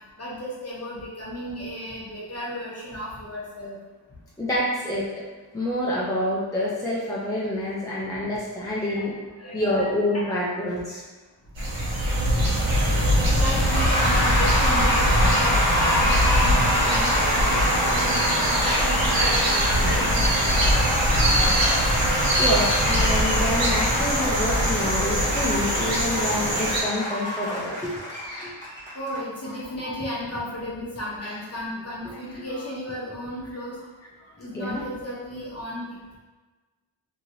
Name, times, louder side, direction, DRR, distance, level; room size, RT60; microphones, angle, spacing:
voice 1, 0.2-3.8 7.6-7.7 8.8-9.0 9.4-10.3 13.3-20.6 23.0-23.7 25.2-25.3 25.6-25.8 27.1-27.6 28.2-28.5 28.9-33.8 34.4-36.2, equal, 35° left, -6 dB, 0.9 m, -34 dB
voice 2, 4.4-5.1 5.5-9.1 9.5-11.0 22.4-27.9 34.5-34.8, left 1 dB, 10° left, -6 dB, 0.4 m, -27 dB
sound 1, 11.6-26.8, equal, 80° right, 1.0 m, -23 dB
Cheering / Applause / Crowd, 13.5-29.2, left 1 dB, 15° right, 0.8 m, -26 dB
3.0 x 2.7 x 2.6 m, 1.3 s
wide cardioid pair, 135°, 45 cm